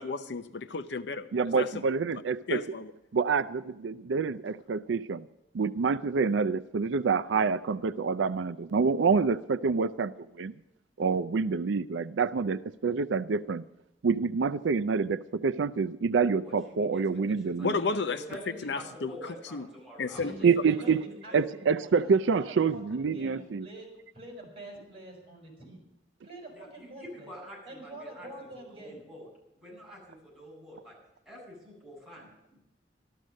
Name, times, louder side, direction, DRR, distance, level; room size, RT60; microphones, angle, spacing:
voice 1, 0.0-1.3 1.6-1.7 2.5-2.9 17.6-18.2 18.6-19.7 20.0-20.3, left 4 dB, 70° left, 11 dB, 0.7 m, -32 dB
voice 2, 1.3-2.6 3.1-5.3 5.5-10.5 11.0-13.6 14.0-17.7 20.4-21.0 21.3-23.7, right 5 dB, 90° right, 12 dB, 0.5 m, -27 dB
voice 3, 16.4-17.0 17.3-20.2 20.6-20.7 21.3-21.4 26.5-29.3 29.6-30.9 31.3-32.6, equal, ahead, -5 dB, 7.9 m, -47 dB
voice 4, 20.1-23.9 24.1-25.8 26.2-27.4 27.6-29.0, right 1 dB, 30° right, 1 dB, 6.3 m, -46 dB
13.5 x 13.0 x 6.4 m, 0.90 s
head